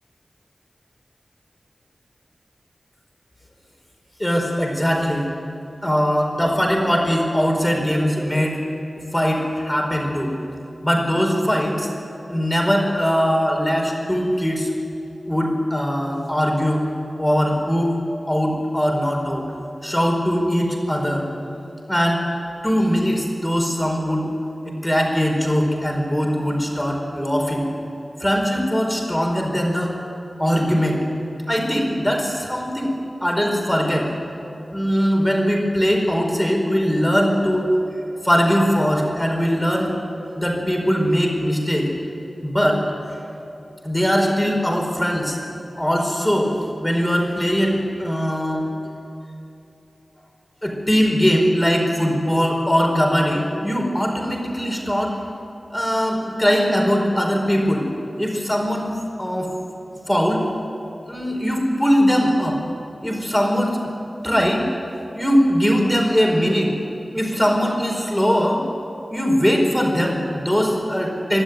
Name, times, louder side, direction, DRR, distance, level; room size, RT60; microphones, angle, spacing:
voice 1, 4.2-5.3 5.8-8.6 9.1-10.3 10.8-11.9 12.3-14.7 15.3-16.9 17.2-18.0 18.3-19.4 19.8-21.3 21.9-22.2 22.6-24.3 24.6-27.7 28.2-30.0 30.4-31.0 31.5-32.9 33.2-34.1 34.7-37.7 38.2-39.9 40.3-41.9 42.4-43.3 43.8-45.4 45.8-48.7 50.6-55.1 55.7-57.8 58.2-58.9 59.2-59.5 60.1-60.4 61.1-62.6 63.0-63.9 64.2-64.6 65.1-66.7 67.1-68.6 69.1-71.4, equal, 10° left, 1 dB, 4.6 m, -20 dB
23.0 x 12.5 x 9.6 m, 2.8 s
wide cardioid pair, 55°, 0 cm